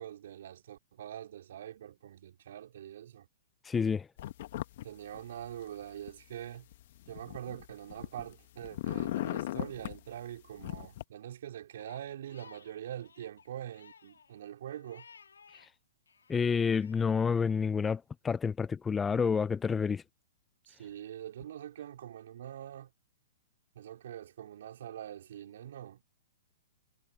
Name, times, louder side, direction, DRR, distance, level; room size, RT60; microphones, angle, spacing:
voice 1, 0.0-3.3 4.8-6.7 7.1-15.1 20.7-22.9 23.7-26.0, right 11 dB, 65° right, 4.6 m, -44 dB
voice 2, 3.6-4.1 16.3-20.0, left 6 dB, 15° left, 0.4 m, -29 dB
sound 1, 4.2-4.8 5.1-6.1 6.7-8.3 8.6-10.0 10.6-11.0, left 14 dB, 55° left, 1.4 m, -37 dB
Crying sobbing, 11.8-15.7 16.1-17.1, left 6 dB, 85° left, 2.5 m, -58 dB
hypercardioid pair, 125°, 0 cm